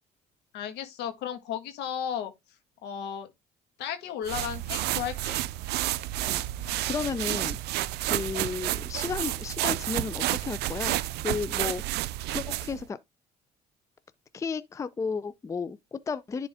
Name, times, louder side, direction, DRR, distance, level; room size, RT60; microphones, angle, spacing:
voice 1, 0.5-2.3 2.8-3.3 3.8-5.4, left 9 dB, 85° left, 1.6 m, -34 dB
sound 1, 4.2-12.8, right 16 dB, 75° right, 0.4 m, -30 dB
voice 2, 6.2-12.0 12.3-13.0 14.3-16.5, left 5 dB, 20° left, 0.4 m, -34 dB
10.5 x 3.7 x 3.5 m
cardioid pair, 110°, 17 cm